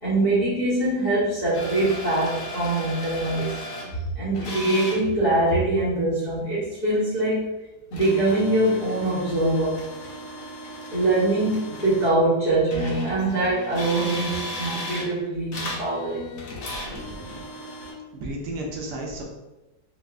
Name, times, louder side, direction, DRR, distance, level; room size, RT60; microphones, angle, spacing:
voice 1, 0.0-3.5 4.2-7.5 7.9-9.8 10.9-16.3, right 2 dB, 40° left, -12 dB, 0.6 m, -23 dB
sound 1, 1.5-3.9 4.3-5.0 7.9-12.2 12.7-15.1 15.5-17.9, left 1 dB, 65° left, 1.0 m, -35 dB
voice 2, 16.9-17.4 18.1-19.2, right 1 dB, 80° right, -1 dB, 1.2 m, -34 dB
4.1 x 2.1 x 2.3 m, 1.0 s
omnidirectional pair, 1.8 m